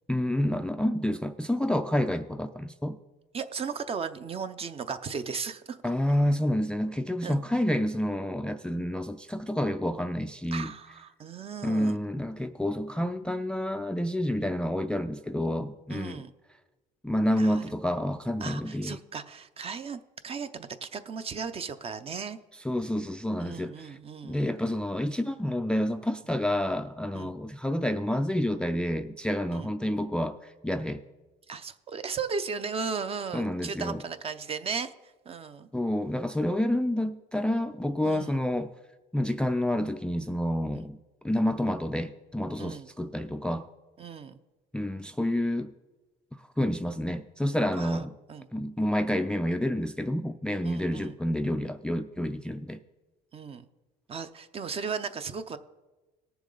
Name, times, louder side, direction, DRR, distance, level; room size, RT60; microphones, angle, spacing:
voice 1, 0.1-3.0 5.8-10.7 11.6-16.2 17.0-19.0 22.6-24.0 24.2-31.0 33.3-34.0 35.7-38.7 39.1-41.0 41.2-43.7 44.7-45.7 46.3-48.1 48.5-52.8, left 1 dB, 5° left, 9 dB, 0.3 m, -29 dB
voice 2, 3.3-5.8 7.2-7.4 10.5-12.0 15.9-16.3 17.4-17.6 18.4-22.4 23.4-24.4 27.1-27.3 29.5-29.7 31.5-34.9 35.3-35.7 38.0-38.4 40.8-40.9 42.6-42.9 44.0-44.4 47.8-48.0 48.3-48.5 50.6-51.2 53.3-53.6 54.1-55.6, right 5 dB, 35° right, 11 dB, 0.6 m, -36 dB
18.0 x 7.0 x 3.9 m, 1.2 s
cardioid pair, 110°, 17 cm